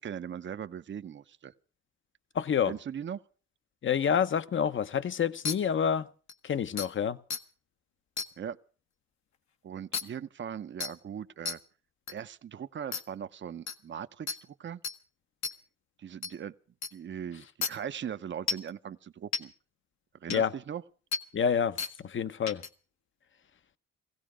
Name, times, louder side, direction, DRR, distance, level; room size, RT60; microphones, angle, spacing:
voice 1, 0.0-1.5 2.7-3.2 8.4-8.6 9.6-11.6 12.1-14.8 16.0-16.5 16.9-19.5 20.2-20.8, right 8 dB, 40° right, 0.7 m, -39 dB
voice 2, 2.3-2.7 3.8-6.1 6.4-7.2 20.3-20.5 21.3-22.6, left 7 dB, 40° left, 0.9 m, -28 dB
sound 1, 5.4-5.5 6.3-6.4 6.8-6.9 7.3-7.4 8.2-8.3 9.9-10.0 10.8-10.9 11.4-11.5 12.1-12.2 12.9-13.0 13.7-13.8 14.3-14.4 14.8-14.9 15.4-15.5 16.2-16.3 16.8-16.9 17.6-17.7 18.5-18.7 19.3-19.4 20.3-20.4 21.1-21.2 21.8-21.9 22.5-22.7, left 5 dB, 65° left, 1.3 m, -32 dB
17.5 x 16.0 x 5.0 m
cardioid pair, 90°, 30 cm